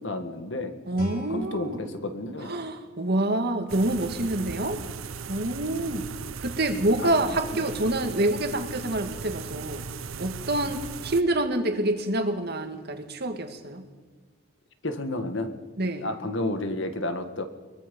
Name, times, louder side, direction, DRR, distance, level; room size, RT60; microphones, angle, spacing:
voice 1, 0.0-0.7 1.3-2.5 7.0-7.1 7.5-7.7 14.8-15.6 16.0-17.4, left 2 dB, 60° left, 8 dB, 1.8 m, -31 dB
Guitar, 0.9-3.7, equal, 45° left, 3.9 m, -42 dB
voice 2, 0.9-1.8 2.4-4.8 5.3-6.1 6.4-9.9 10.2-13.8 15.8-16.1, right 1 dB, 50° right, 6 dB, 2.1 m, -27 dB
sound 1, 3.7-11.2, right 5 dB, 80° right, 0.8 m, -37 dB
22.5 x 22.5 x 5.4 m, 1.4 s
head